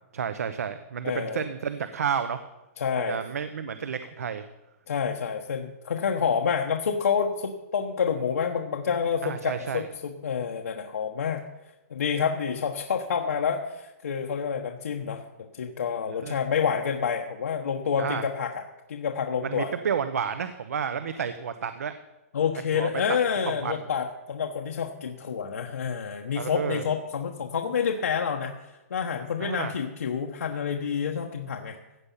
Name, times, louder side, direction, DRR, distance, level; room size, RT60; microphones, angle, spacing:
voice 1, 0.1-2.4 3.1-4.5 9.2-9.9 16.2-16.4 18.0-18.2 19.4-21.9 22.7-23.2 23.6-23.7 26.3-26.8 29.4-29.7, right 7 dB, 80° right, 11 dB, 0.9 m, -31 dB
voice 2, 1.0-1.4 2.8-3.2 4.9-11.4 11.9-18.6 18.9-19.7 22.3-31.8, left 6 dB, 90° left, 2 dB, 1.2 m, -28 dB
15.0 x 8.5 x 5.7 m, 0.98 s
hypercardioid pair, 180°, 8 cm